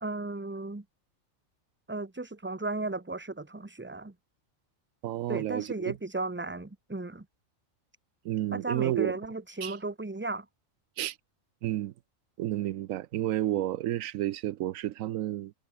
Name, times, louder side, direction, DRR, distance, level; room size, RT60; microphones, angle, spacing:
voice 1, 0.0-0.8 1.9-4.1 5.3-7.3 8.5-10.5, right 2 dB, 10° right, 0.8 m, -35 dB
voice 2, 5.0-6.0 8.2-9.1 9.6-9.8 11.0-11.2 11.6-11.9 12.4-15.5, right 13 dB, 85° right, 1.0 m, -31 dB
omnidirectional pair, 1.4 m